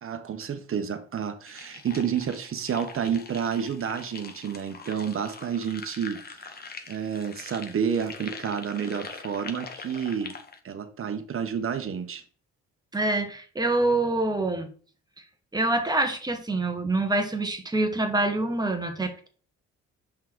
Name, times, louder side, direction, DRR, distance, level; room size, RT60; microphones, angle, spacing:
voice 1, 0.0-6.6 6.9-10.3 10.6-12.2, right 7 dB, 45° right, 1.0 m, -30 dB
sound 1, 1.5-10.6, left 4 dB, 30° left, 0.9 m, -43 dB
voice 2, 12.9-14.7 15.5-19.3, right 2 dB, 15° right, 1.3 m, -26 dB
5.7 x 3.8 x 4.6 m
cardioid pair, 90°, 30 cm